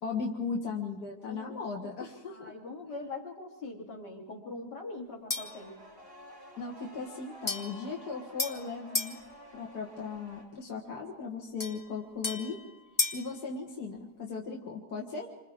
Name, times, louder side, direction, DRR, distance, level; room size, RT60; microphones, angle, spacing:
voice 1, 0.0-2.5 6.6-9.2 9.5-12.6 13.1-15.3, left 5 dB, 70° left, -1 dB, 2.2 m, -37 dB
voice 2, 1.2-1.6 2.3-5.8, left 3 dB, 90° left, -2 dB, 3.7 m, -42 dB
sound 1, 5.3-5.7 7.5-9.2 11.6-13.3, left 3 dB, 15° left, 0.8 m, -34 dB
sound 2, 5.3-10.4, equal, 10° right, 4.7 m, -51 dB
28.0 x 26.0 x 3.7 m, 1.0 s
omnidirectional pair, 1.8 m